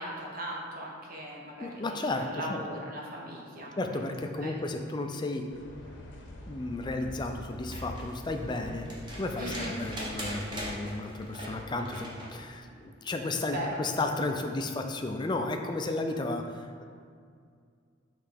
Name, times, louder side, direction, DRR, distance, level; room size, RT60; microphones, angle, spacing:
voice 1, 0.0-4.0 4.4-4.5 9.4-9.7 13.5-13.8, equal, 45° right, -2 dB, 1.1 m, -38 dB
voice 2, 1.6-2.6 3.8-5.5 6.5-8.9 9.2-16.8, left 2 dB, 25° left, 4 dB, 0.4 m, -33 dB
sound 1, 5.5-10.7, left 1 dB, 70° left, 0.8 m, -45 dB
sound 2, 7.5-12.4 14.0-14.1, equal, 25° right, 1.1 m, -41 dB
6.8 x 3.2 x 5.2 m, 2.2 s
head